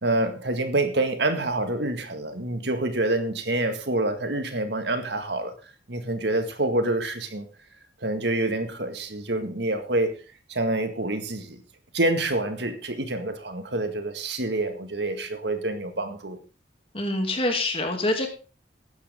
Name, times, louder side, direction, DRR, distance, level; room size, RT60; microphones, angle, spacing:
voice 1, 0.0-5.5 5.9-7.4 8.0-10.2 10.5-11.6 11.9-16.4, right 2 dB, 65° right, 1.9 m, -27 dB
voice 2, 16.9-18.3, left 2 dB, 30° left, 2.7 m, -25 dB
15.0 x 11.0 x 3.7 m
head